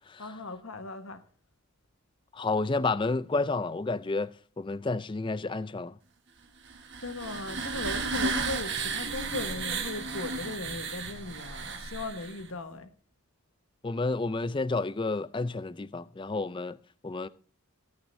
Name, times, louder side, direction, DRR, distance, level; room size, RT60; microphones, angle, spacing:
voice 1, 0.2-1.2 7.0-12.9, left 2 dB, 70° left, 1.3 m, -38 dB
voice 2, 2.3-5.9 13.8-16.8 17.0-17.3, left 3 dB, 20° left, 0.4 m, -30 dB
sound 1, 6.6-12.5, right 4 dB, 55° right, 1.4 m, -34 dB
16.0 x 8.9 x 2.6 m
head